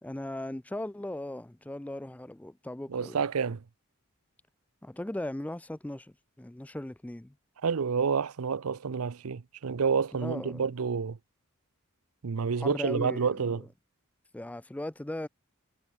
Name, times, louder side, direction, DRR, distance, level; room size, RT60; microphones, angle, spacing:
voice 1, 0.0-3.2 4.8-7.4 10.1-10.6 12.6-13.7 14.3-15.3, left 1 dB, 5° left, 0.3 m, -38 dB
voice 2, 2.9-3.6 7.6-11.2 12.2-13.6, right 5 dB, 85° right, 0.6 m, -29 dB
head